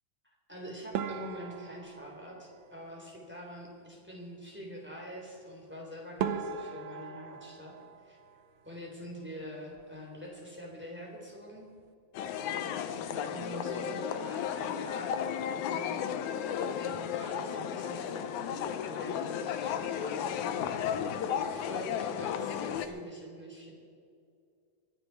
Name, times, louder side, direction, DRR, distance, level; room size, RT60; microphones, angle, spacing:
voice 1, 0.2-7.8 8.0-8.2 8.6-11.7 12.4-15.3 15.5-16.1 16.7-23.7, equal, 5° right, -1 dB, 2.9 m, -45 dB
sound 1, 0.9-3.4 5.7-5.8 6.2-9.0 9.2-10.0 10.3-10.5 10.8-10.9 11.5-11.9, right 7 dB, 70° right, 1.7 m, -39 dB
sound 2, 12.1-22.9, left 8 dB, 70° left, 1.9 m, -34 dB
24.0 x 10.0 x 4.6 m, 2.3 s
omnidirectional pair, 4.1 m